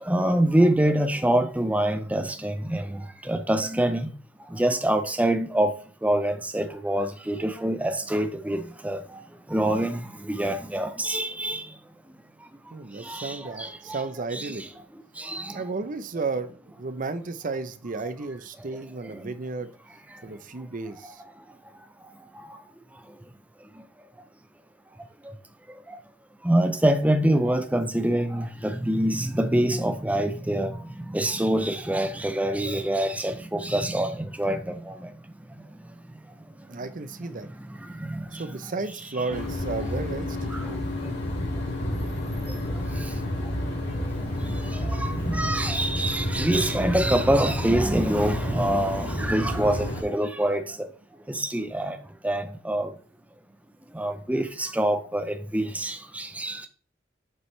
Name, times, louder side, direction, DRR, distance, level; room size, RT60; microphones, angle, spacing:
voice 1, 0.1-2.8 3.3-4.1 4.5-5.7 6.0-9.0 9.5-10.0 10.3-11.6 13.1-14.0 14.3-14.5 15.2-15.5 26.5-30.7 31.1-34.6 45.0-50.6 51.3-52.0 52.2-52.9 54.0-56.7, right 1 dB, 10° right, 0.6 m, -25 dB
voice 2, 12.7-14.6 15.5-19.7 20.2-21.2 36.7-37.5 38.3-40.8, right 3 dB, 45° right, 0.7 m, -33 dB
sound 1, 39.3-50.0, left 1 dB, 65° left, 2.7 m, -30 dB
7.6 x 5.8 x 3.2 m
head